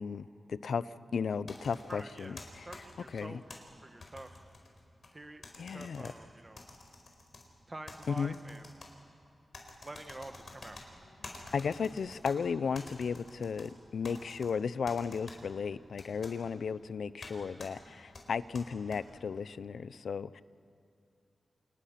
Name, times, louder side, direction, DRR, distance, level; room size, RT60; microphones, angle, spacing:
voice 1, 0.0-2.7 3.1-3.4 5.6-6.1 8.1-8.4 11.4-20.4, left 6 dB, 90° left, 16 dB, 0.6 m, -35 dB
sound 1, 1.5-3.6 4.0-5.1 5.4-6.1 6.6-7.4 7.9-8.9 9.5-10.8 11.2-12.3 12.7-13.7 14.0-14.5 14.9-15.4 16.0-16.3 17.2-17.3 17.6-17.7 18.1-19.0, left 3 dB, 55° left, 4.4 m, -48 dB
voice 2, 1.9-4.3 5.1-5.4 5.7-6.6 7.7-8.7 9.8-10.8 16.3-16.5, right 2 dB, 25° right, 7 dB, 1.6 m, -48 dB
29.5 x 28.5 x 5.9 m, 2.5 s
wide cardioid pair, 130°, 0 cm